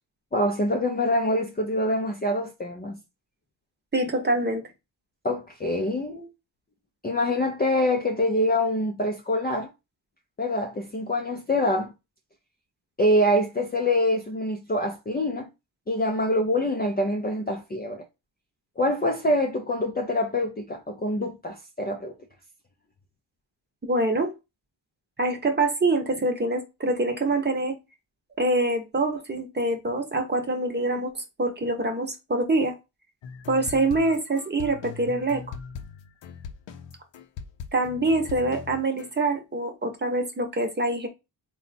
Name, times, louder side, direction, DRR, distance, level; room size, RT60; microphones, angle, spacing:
voice 1, 0.3-3.0 5.2-6.3 7.0-9.7 10.4-11.9 13.0-15.5 15.9-18.0 18.8-22.1, left 1 dB, 20° left, 0.4 m, -25 dB
voice 2, 3.9-4.6 23.8-24.3 25.2-27.8 28.4-32.7 33.5-35.4 37.7-41.1, right 2 dB, 25° right, 0.8 m, -25 dB
sound 1, 33.2-39.1, left 6 dB, 80° left, 0.7 m, -40 dB
4.1 x 2.3 x 4.0 m
wide cardioid pair, 140°, 45 cm